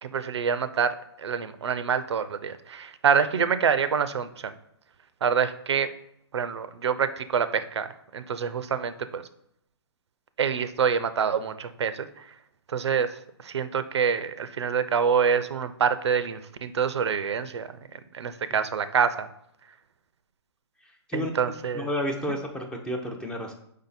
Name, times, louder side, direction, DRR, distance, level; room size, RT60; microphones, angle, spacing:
voice 1, 0.0-4.5 5.2-5.9 6.3-9.2 10.4-12.3 12.7-19.3 21.1-21.9, right 6 dB, 80° right, 13 dB, 0.4 m, -26 dB
voice 2, 20.8-21.3 21.7-23.5, left 1 dB, 5° left, 2 dB, 0.4 m, -31 dB
4.9 x 2.7 x 4.0 m, 0.73 s
hypercardioid pair, 135°, 14 cm